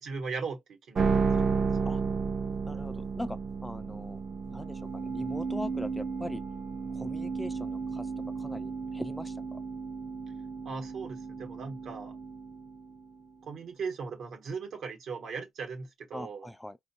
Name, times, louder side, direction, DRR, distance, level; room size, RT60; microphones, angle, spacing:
voice 1, 0.0-1.9 10.6-12.2 13.4-16.5, right 5 dB, 70° right, 1.1 m, -39 dB
sound 1, 0.9-13.3, right 5 dB, 45° right, 0.6 m, -33 dB
voice 2, 2.7-4.2 4.5-6.4 6.9-8.1 8.4-9.6 16.1-16.8, left 1 dB, 5° left, 0.3 m, -41 dB
4.5 x 2.4 x 2.7 m
cardioid pair, 90°, 0 cm